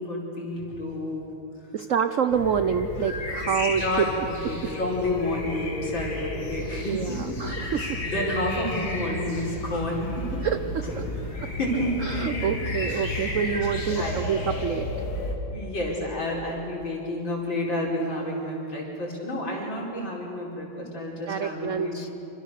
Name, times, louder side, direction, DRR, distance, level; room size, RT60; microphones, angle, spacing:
voice 1, 0.0-1.3 3.8-4.2 4.5-7.4 7.8-10.4 10.8-11.0 11.6-12.4 12.9-13.1 14.0-14.2 15.5-22.0, left 1 dB, 65° left, -2 dB, 5.5 m, -30 dB
voice 2, 1.7-4.0 4.4-4.5 6.9-8.0 10.4-11.0 11.4-11.5 12.0-14.9 21.3-22.1, right 7 dB, 80° right, 10 dB, 0.7 m, -27 dB
sound 1, 2.3-15.3, left 1 dB, 80° left, 4.0 m, -32 dB
27.0 x 26.5 x 6.7 m, 2.9 s
omnidirectional pair, 2.3 m